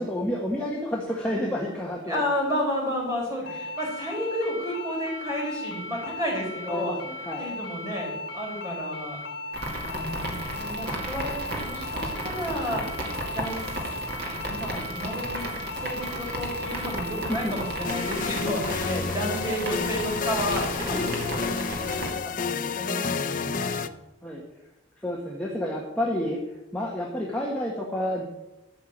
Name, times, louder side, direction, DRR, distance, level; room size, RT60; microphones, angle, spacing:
voice 1, 0.0-2.2 3.5-3.6 6.7-7.5 17.2-17.6 18.9-19.1 24.2-24.4 25.0-26.4 26.7-28.3, left 1 dB, 5° left, -3 dB, 1.3 m, -30 dB
voice 2, 2.1-7.0 7.4-9.2 9.7-12.8 13.3-13.6 14.2-22.1 22.4-23.8, equal, 15° right, -2 dB, 4.2 m, -32 dB
sound 1, 3.5-18.3, left 2 dB, 70° left, 2.4 m, -37 dB
sound 2, 9.5-22.1, right 1 dB, 55° right, 2.3 m, -34 dB
sound 3, 17.8-23.9, left 5 dB, 45° left, 0.5 m, -30 dB
13.5 x 5.8 x 7.9 m, 0.97 s
head